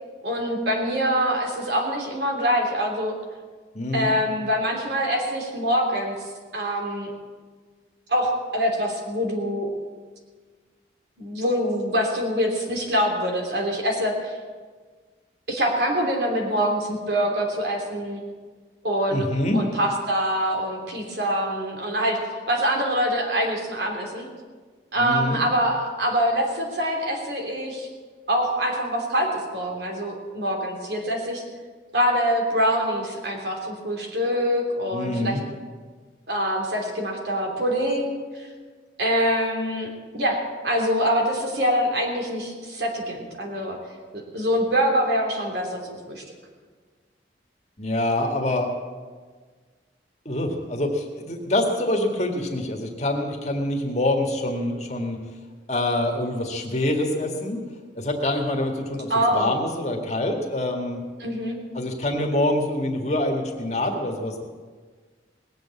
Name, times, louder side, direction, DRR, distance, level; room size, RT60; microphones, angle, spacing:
voice 1, 0.2-3.1 3.9-6.1 6.5-7.1 8.1-9.7 11.2-14.4 15.5-18.2 18.8-19.2 19.5-22.2 22.5-24.3 24.9-27.9 28.3-31.4 31.9-35.4 36.3-38.5 39.0-43.8 44.1-46.2 59.1-59.6 61.2-61.6, equal, 65° right, 1 dB, 3.2 m, -24 dB
voice 2, 3.7-4.1 19.1-19.6 25.0-25.4 34.9-35.4 47.8-48.7 50.3-55.2 55.7-57.6 58.0-61.0 61.7-64.5, left 1 dB, 35° left, 2 dB, 1.9 m, -25 dB
19.5 x 8.0 x 8.5 m, 1.5 s
head